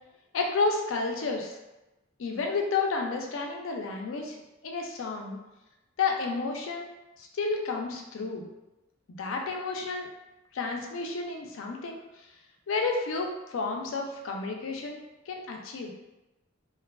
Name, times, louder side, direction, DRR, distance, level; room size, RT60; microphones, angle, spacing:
voice 1, 0.3-1.6 2.2-5.4 6.0-8.5 9.2-10.1 10.5-12.3 12.7-15.9, left 4 dB, 70° left, 1 dB, 0.4 m, -31 dB
2.6 x 2.3 x 2.2 m, 0.99 s
head